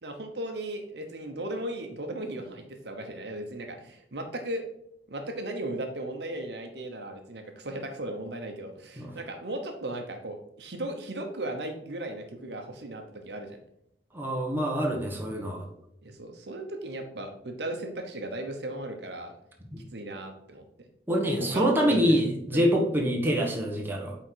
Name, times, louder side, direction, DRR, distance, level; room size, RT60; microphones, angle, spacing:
voice 1, 0.0-4.6 5.1-13.6 16.0-19.3 19.9-20.6 21.3-22.1 22.5-22.7, right 1 dB, 65° right, 4 dB, 1.0 m, -36 dB
voice 2, 14.1-15.6 19.7-19.8 21.1-24.2, equal, 10° right, -1 dB, 1.4 m, -25 dB
8.8 x 3.9 x 4.6 m, 0.76 s
head